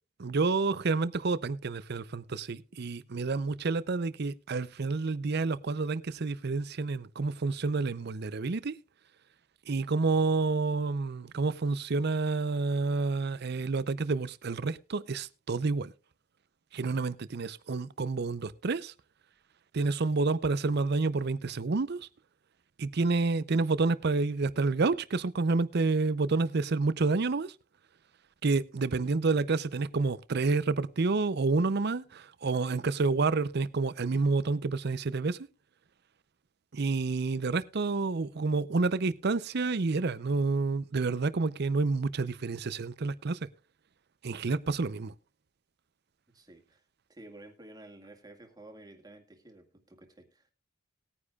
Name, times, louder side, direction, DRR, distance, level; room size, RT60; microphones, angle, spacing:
voice 1, 0.2-8.7 9.7-15.9 16.7-18.9 19.7-22.0 22.8-27.5 28.4-35.4 36.7-43.5 44.2-45.1, right 3 dB, 55° right, 0.6 m, -29 dB
voice 2, 46.3-50.5, right 1 dB, 20° right, 1.9 m, -52 dB
19.5 x 9.7 x 2.4 m
head